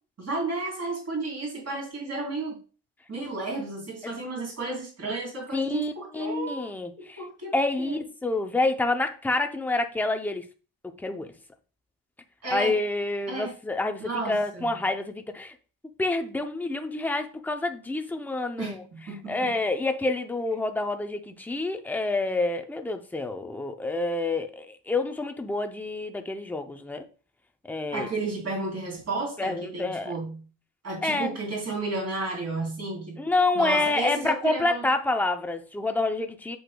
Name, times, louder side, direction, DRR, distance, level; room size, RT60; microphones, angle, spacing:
voice 1, 0.2-2.6 3.1-6.6 7.2-8.0 12.4-12.8 13.3-13.5 14.0-14.8 18.6-19.5 27.9-30.4 30.8-33.2 33.5-34.9, right 3 dB, 35° right, 3.5 m, -32 dB
voice 2, 5.5-7.2 7.5-10.4 11.0-11.3 12.5-15.5 16.0-18.8 19.3-27.0 27.6-28.1 29.4-30.1 31.0-31.4 33.2-36.6, left 2 dB, 5° left, 0.5 m, -28 dB
8.0 x 7.8 x 2.2 m
wide cardioid pair, 180°, 44 cm